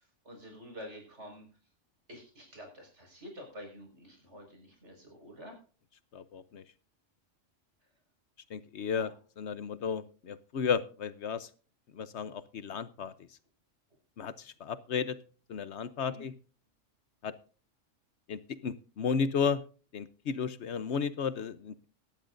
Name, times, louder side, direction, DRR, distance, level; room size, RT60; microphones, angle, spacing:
voice 1, 0.3-1.4 2.1-5.5 8.9-9.1 16.0-16.3, equal, 65° right, 3 dB, 5.4 m, -48 dB
voice 2, 6.1-6.6 8.5-11.5 11.9-13.1 14.2-15.2 15.5-16.3 17.2-17.3 18.3-19.6 19.9-21.8, left 6 dB, 65° left, 15 dB, 1.0 m, -33 dB
18.0 x 12.0 x 2.5 m, 0.37 s
omnidirectional pair, 1.3 m